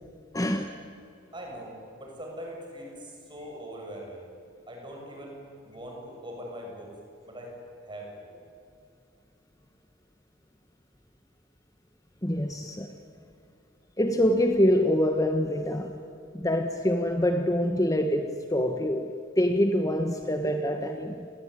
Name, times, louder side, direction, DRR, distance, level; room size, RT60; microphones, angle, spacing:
voice 1, 0.3-0.7 12.2-12.9 14.0-16.0 16.3-21.3, equal, 15° left, 6 dB, 1.3 m, -25 dB
voice 2, 1.3-4.2 4.7-5.4 5.6-6.9 7.2-7.6 7.8-8.3, equal, 25° right, 0 dB, 7.3 m, -41 dB
28.5 x 21.0 x 9.9 m, 2.6 s
head